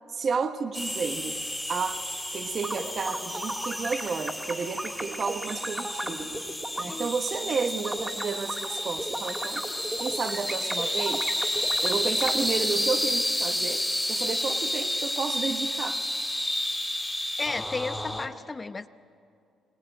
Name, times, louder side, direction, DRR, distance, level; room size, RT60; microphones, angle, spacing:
voice 1, 0.1-1.4 1.7-2.1 2.3-6.3 6.8-9.6 10.0-11.3 11.8-16.0, right 5 dB, 50° right, 7 dB, 1.2 m, -32 dB
sound 1, 0.7-18.3, left 1 dB, 5° left, 2.6 m, -31 dB
sound 2, 2.5-6.8 7.3-12.3, right 1 dB, 10° right, 2.4 m, -35 dB
voice 2, 17.4-18.9, left 3 dB, 25° left, 12 dB, 0.8 m, -34 dB
21.5 x 20.0 x 9.1 m, 2.4 s
cardioid pair, 90°, 0 cm